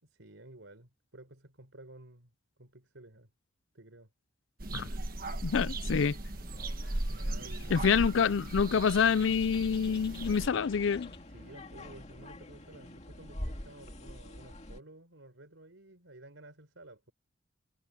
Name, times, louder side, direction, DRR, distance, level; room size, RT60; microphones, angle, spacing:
voice 1, 0.0-2.3 2.6-3.3 3.7-4.1 7.1-8.1 11.3-17.1, right 2 dB, 85° right, 4.3 m, -53 dB
sound 1, 4.6-10.5, right 1 dB, 50° right, 1.3 m, -37 dB
voice 2, 5.4-6.1 7.7-11.1, left 6 dB, 75° left, 0.4 m, -27 dB
sound 2, 6.3-14.8, left 1 dB, 35° left, 2.3 m, -47 dB
Bird, 6.7-11.7, left 9 dB, 60° left, 1.9 m, -54 dB
head